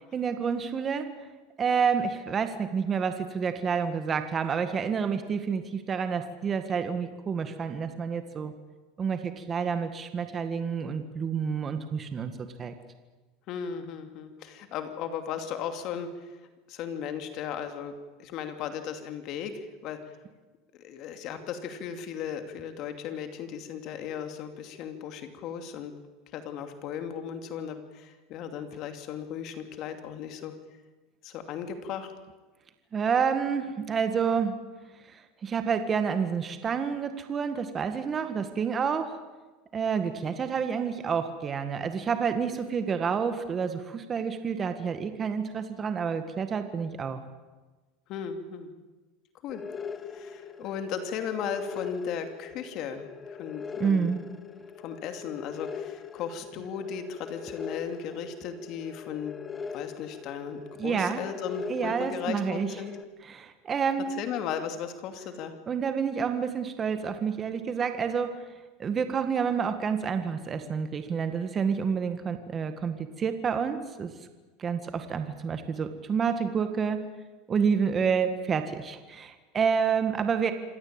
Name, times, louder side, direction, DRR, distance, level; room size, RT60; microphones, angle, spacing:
voice 1, 0.1-1.1 1.6-8.5 9.0-12.7 32.9-34.6 35.1-39.2 39.7-47.2 53.8-54.2 60.8-61.2 61.7-62.7 63.2-64.1 65.7-68.5 68.8-74.1 74.6-77.0 77.5-80.5, right 6 dB, 25° right, 8 dB, 1.8 m, -29 dB
voice 2, 13.5-16.4 16.7-17.9 18.2-20.1 20.7-25.9 26.3-30.5 31.2-32.1 48.1-48.7 49.4-49.6 50.1-54.1 54.8-59.3 59.7-62.9 64.2-65.5, left 7 dB, 50° left, 7 dB, 2.6 m, -36 dB
sound 1, 49.5-63.0, left 6 dB, 20° left, 1.3 m, -41 dB
26.5 x 17.0 x 8.9 m, 1.2 s
supercardioid pair, 130°, 0 cm